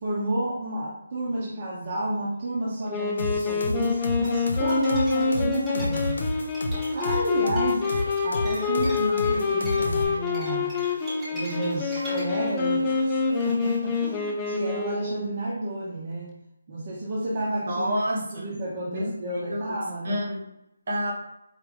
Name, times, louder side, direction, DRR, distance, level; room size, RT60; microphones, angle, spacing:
voice 1, 0.0-6.2 6.9-7.8 8.2-10.7 11.3-13.2 13.4-16.3 16.7-17.9 18.4-20.2, right 1 dB, 35° right, -7 dB, 1.0 m, -30 dB
Wind instrument woodwind instrument, 2.9-15.3, left 5 dB, 15° left, 0.4 m, -27 dB
sound 1, 3.2-10.0, left 1 dB, 85° left, 0.9 m, -31 dB
sound 2, 3.8-14.3, equal, 10° right, 1.2 m, -41 dB
voice 2, 17.7-18.6 18.9-19.1 19.5-19.8 20.0-20.4 20.9-21.1, equal, 50° right, -1 dB, 1.5 m, -28 dB
4.7 x 2.8 x 3.7 m, 0.84 s
hypercardioid pair, 170°, 0 cm